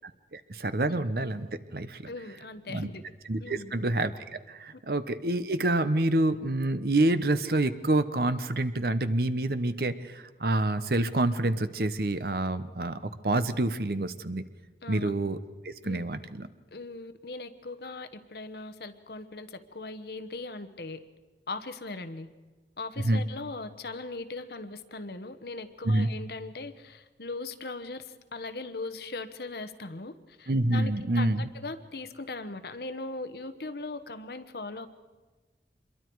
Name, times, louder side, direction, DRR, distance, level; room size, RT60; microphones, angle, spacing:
voice 1, 0.0-2.1 2.7-2.9 3.3-4.1 4.5-14.4 14.9-15.4 15.6-16.5 23.0-23.2 25.8-26.1 30.5-31.4, right 2 dB, 55° right, 12 dB, 0.9 m, -27 dB
voice 2, 2.1-3.0 3.4-3.7 14.8-15.1 15.8-16.1 16.7-21.0 21.5-22.3 22.8-34.9, left 3 dB, 65° left, 10 dB, 1.1 m, -39 dB
26.5 x 22.5 x 4.7 m, 1.3 s
head